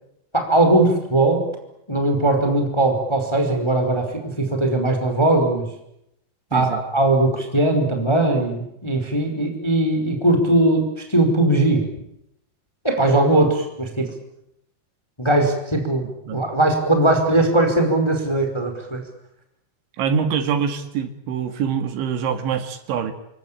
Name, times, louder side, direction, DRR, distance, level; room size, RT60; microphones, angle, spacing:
voice 1, 0.3-1.4 1.9-5.6 6.5-11.8 12.8-14.1 15.2-19.0, right 2 dB, 5° left, 5 dB, 4.1 m, -19 dB
voice 2, 20.0-23.1, right 7 dB, 70° right, 9 dB, 4.0 m, -24 dB
29.0 x 22.5 x 8.9 m, 0.79 s
omnidirectional pair, 5.8 m